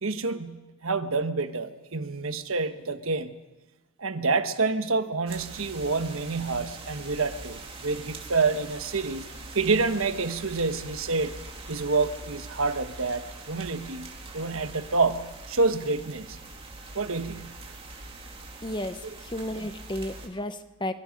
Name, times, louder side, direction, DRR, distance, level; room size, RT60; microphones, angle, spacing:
voice 1, 0.0-3.3 4.0-9.3 9.5-11.3 11.7-14.1 14.3-16.4 16.9-17.5, right 3 dB, 75° right, 9 dB, 1.3 m, -28 dB
sound 1, 5.3-20.3, right 3 dB, 25° right, 2.6 m, -43 dB
voice 2, 18.6-20.9, left 1 dB, 20° left, 10 dB, 0.9 m, -33 dB
24.0 x 23.0 x 5.3 m, 1.1 s
head